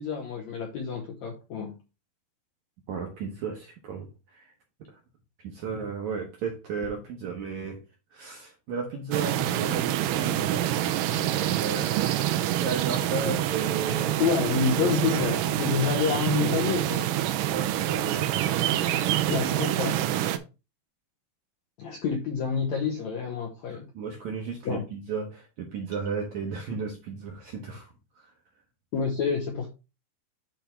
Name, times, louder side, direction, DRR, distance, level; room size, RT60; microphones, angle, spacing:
voice 1, 0.0-1.8 14.2-17.1 19.3-20.1 21.8-23.9 24.6-24.8 28.9-29.7, left 6 dB, 75° left, 1 dB, 1.7 m, -28 dB
voice 2, 2.9-4.6 4.9-5.0 5.4-7.8 8.1-11.0 11.3-11.9 12.6-14.2 14.8-15.2 17.4-18.7 19.1-19.4 23.7-28.3, right 5 dB, 70° right, 2 dB, 1.8 m, -35 dB
sound 1, 9.1-20.4, right 12 dB, 85° right, 1.8 m, -26 dB
9.0 x 3.5 x 4.3 m, 0.29 s
omnidirectional pair, 4.5 m